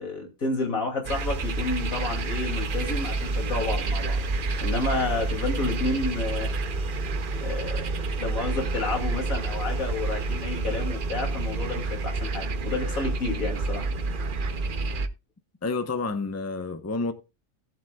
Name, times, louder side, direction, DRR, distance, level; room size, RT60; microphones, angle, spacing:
voice 1, 0.0-4.2 4.6-7.0 7.4-13.8, left 3 dB, 90° left, 3.0 m, -30 dB
sound 1, 1.0-15.1, right 3 dB, 50° right, 0.8 m, -29 dB
sound 2, 8.1-14.5, left 2 dB, 65° left, 4.0 m, -50 dB
voice 2, 15.6-17.1, left 3 dB, 15° left, 0.7 m, -29 dB
18.0 x 7.6 x 2.3 m
omnidirectional pair, 1.4 m